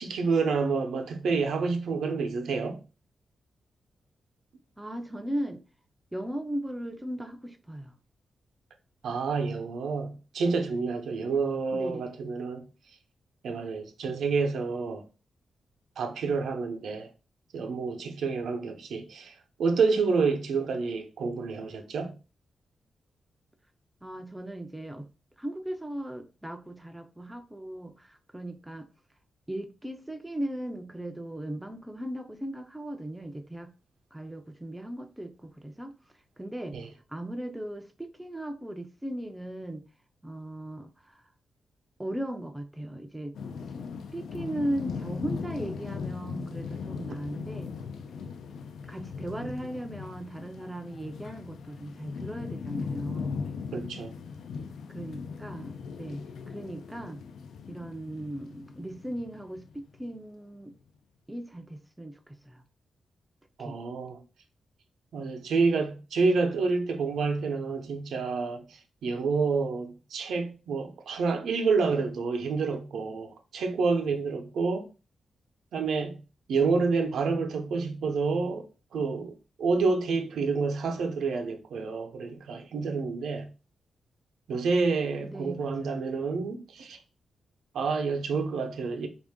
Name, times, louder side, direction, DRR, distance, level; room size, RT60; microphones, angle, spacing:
voice 1, 0.0-2.8 9.0-12.7 13.4-15.0 16.0-17.1 17.5-19.3 19.6-22.2 36.7-36.9 49.4-49.5 53.7-54.1 63.6-64.2 65.1-68.6 69.0-74.9 75.7-76.2 76.5-83.5 84.5-87.0 87.7-89.1, right 4 dB, 85° right, 0.6 m, -28 dB
voice 2, 4.8-5.6 6.1-7.9 11.7-12.2 24.0-25.1 25.4-28.9 29.5-33.7 34.1-35.9 36.4-36.8 37.1-39.8 40.2-41.2 42.0-43.7 44.1-47.7 48.9-53.4 54.9-56.2 56.5-57.2 57.7-60.7 61.3-62.6 63.6-63.8 85.2-86.1, right 1 dB, 5° right, 0.3 m, -37 dB
sound 1, 43.3-60.2, left 5 dB, 90° left, 0.3 m, -39 dB
3.6 x 2.5 x 3.5 m
wide cardioid pair, 180°, 0 cm